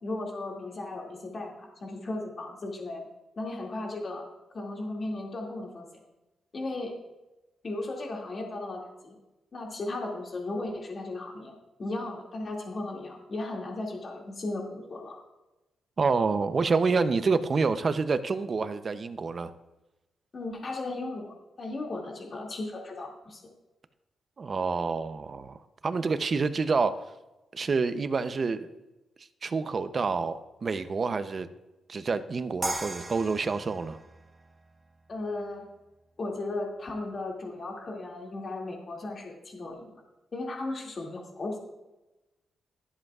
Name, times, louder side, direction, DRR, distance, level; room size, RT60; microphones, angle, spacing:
voice 1, 0.0-3.1 3.4-4.3 4.5-5.9 6.5-6.9 7.6-9.2 9.5-11.5 11.8-15.2 20.3-23.4 35.1-35.6 36.2-39.9 40.3-41.6, left 2 dB, 40° left, 0 dB, 2.3 m, -36 dB
voice 2, 16.0-19.5 24.4-27.0 27.5-28.7 29.2-31.5 31.9-34.0, right 4 dB, 35° right, 11 dB, 0.6 m, -28 dB
sound 1, 32.6-35.7, right 2 dB, 20° right, 1.0 m, -38 dB
23.0 x 7.8 x 2.4 m, 1.0 s
wide cardioid pair, 130°, 0 cm